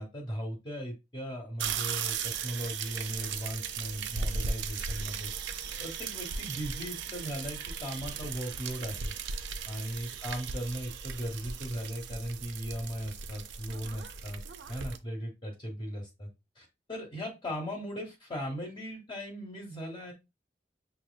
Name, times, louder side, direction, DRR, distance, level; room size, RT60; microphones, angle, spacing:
voice 1, 0.0-5.3 5.8-9.1 9.7-14.4 14.7-16.3 16.6-20.1, equal, 25° left, 1 dB, 0.9 m, -38 dB
sound 1, 1.6-15.0, right 5 dB, 85° right, 0.5 m, -37 dB
6.0 x 2.9 x 2.2 m, 0.24 s
head